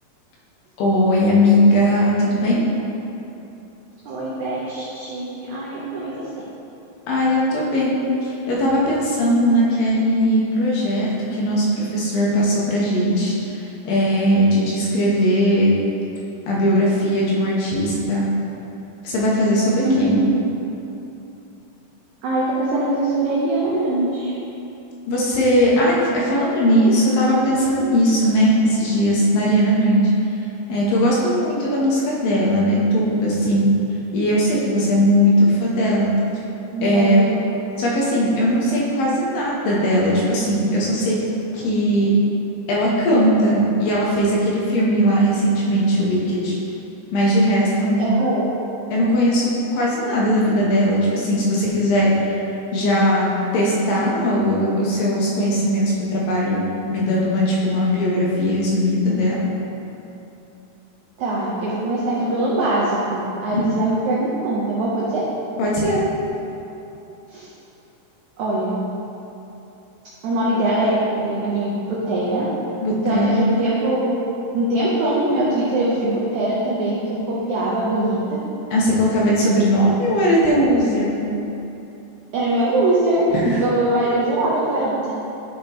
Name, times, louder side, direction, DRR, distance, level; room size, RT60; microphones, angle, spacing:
voice 1, 0.8-2.6 7.1-15.7 16.5-18.3 19.0-20.2 25.1-30.1 30.7-33.7 34.1-36.1 36.8-37.2 37.8-41.2 41.5-42.1 42.7-46.6 47.1-48.0 48.9-52.4 52.7-53.3 53.5-59.4 63.5-63.6 65.6-66.1 72.8-73.4 78.7-81.2 83.3-83.6, equal, 70° left, -5 dB, 2.5 m, -19 dB
voice 2, 4.0-6.2 19.8-20.3 22.2-24.3 36.7-37.4 48.0-48.5 61.2-65.2 67.3-67.5 68.4-68.8 70.2-72.5 73.0-74.1 74.5-78.4 82.3-83.3 83.6-85.1, right 2 dB, 85° right, -7 dB, 1.6 m, -22 dB
11.0 x 5.3 x 3.0 m, 2.9 s
omnidirectional pair, 4.6 m